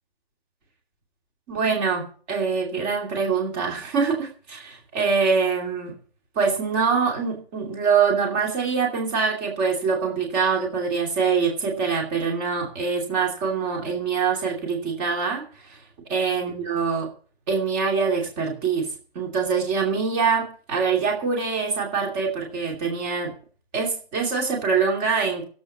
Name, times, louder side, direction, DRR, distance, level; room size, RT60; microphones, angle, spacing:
voice 1, 1.5-5.9 6.3-15.8 16.1-17.1 17.5-18.9 19.1-23.3 23.7-25.4, right 5 dB, 10° right, 1 dB, 2.7 m, -24 dB
15.5 x 8.2 x 7.1 m, 0.42 s
hypercardioid pair, 175°, 31 cm